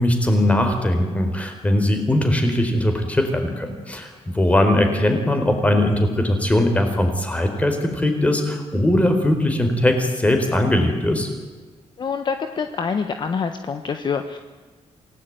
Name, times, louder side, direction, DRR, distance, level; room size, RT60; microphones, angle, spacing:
voice 1, 0.0-11.3, left 1 dB, 10° left, 5 dB, 4.2 m, -20 dB
voice 2, 12.0-14.4, left 6 dB, 40° left, 7 dB, 1.3 m, -26 dB
27.5 x 18.0 x 9.5 m, 1.4 s
wide cardioid pair, 175°, 12 cm